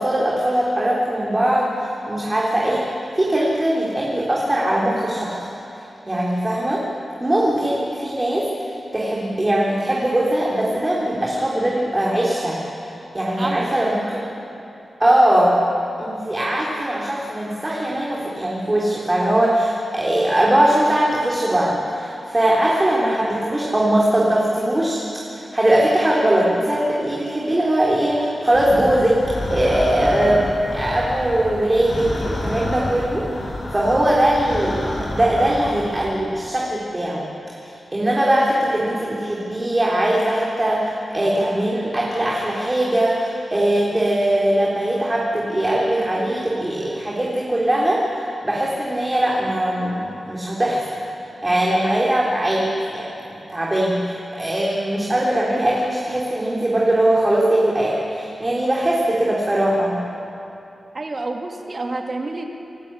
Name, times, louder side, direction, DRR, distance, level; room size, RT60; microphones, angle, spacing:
voice 1, 0.0-2.9 3.2-5.4 5.7-6.8 7.2-12.6 13.1-14.2 15.0-15.6 16.0-29.2 29.5-37.2 37.6-51.0 51.4-60.0, right 1 dB, 25° right, -4 dB, 3.5 m, -20 dB
voice 2, 13.4-13.8 60.9-62.5, right 2 dB, 45° right, 2 dB, 2.5 m, -29 dB
sound 1, 28.5-36.1, left 1 dB, 60° left, 5.8 m, -29 dB
26.0 x 11.5 x 8.9 m, 2.8 s
cardioid pair, 50°, 0 cm